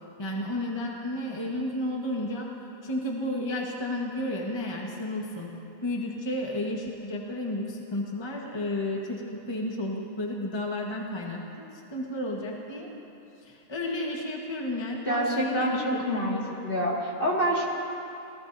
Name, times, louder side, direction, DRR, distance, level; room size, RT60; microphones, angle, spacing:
voice 1, 0.2-2.5 2.8-5.5 5.8-12.9 13.4-16.4, left 1 dB, 20° left, -1 dB, 1.3 m, -32 dB
voice 2, 15.0-16.4 16.6-17.7, equal, 40° left, -3 dB, 2.3 m, -26 dB
27.0 x 18.5 x 2.7 m, 2.8 s
omnidirectional pair, 1.5 m